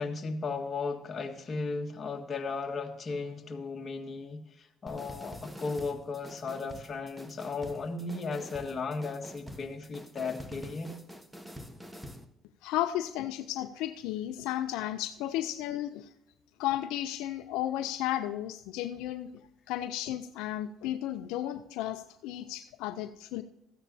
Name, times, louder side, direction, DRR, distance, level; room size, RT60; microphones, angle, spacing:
voice 1, 0.0-11.0, left 4 dB, 35° left, 3 dB, 1.7 m, -36 dB
sound 1, 4.9-12.3, equal, 5° right, 1.2 m, -46 dB
voice 2, 12.6-16.1 16.6-19.3 19.7-23.4, left 13 dB, 85° left, 9 dB, 0.5 m, -34 dB
14.0 x 9.0 x 2.8 m, 0.81 s
supercardioid pair, 85°, 0 cm